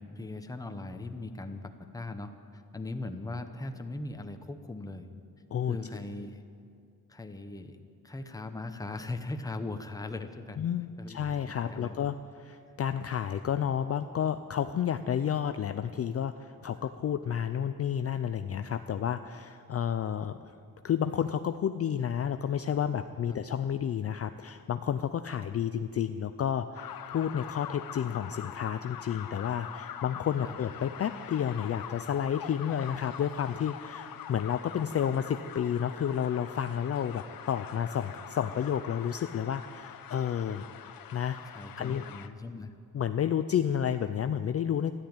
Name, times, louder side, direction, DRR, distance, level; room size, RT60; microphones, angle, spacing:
voice 1, 0.0-5.1 5.7-6.4 7.1-7.8 8.0-10.6 11.0-11.2 11.5-12.0 23.3-23.4 30.4-30.6 41.4-42.7, left 2 dB, 10° left, 6 dB, 0.7 m, -39 dB
voice 2, 10.6-20.4 20.8-40.6 41.1-41.4 41.8-42.0 42.9-44.9, left 9 dB, 45° left, 10 dB, 0.4 m, -31 dB
sound 1, 26.8-42.3, left 9 dB, 70° left, 0.8 m, -44 dB
13.5 x 11.5 x 8.9 m, 2.4 s
wide cardioid pair, 180°, 36 cm